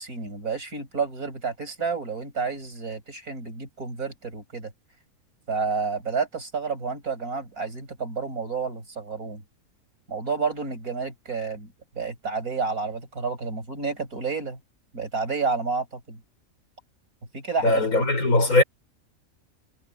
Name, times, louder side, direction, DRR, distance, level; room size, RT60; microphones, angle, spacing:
voice 1, 0.0-4.7 5.5-9.4 10.1-14.6 14.9-16.2 17.3-17.8 18.5-18.6, right 4 dB, 85° right, 5.9 m, -30 dB
voice 2, 17.6-18.6, left 2 dB, 80° left, 5.4 m, -20 dB
omnidirectional pair, 1.5 m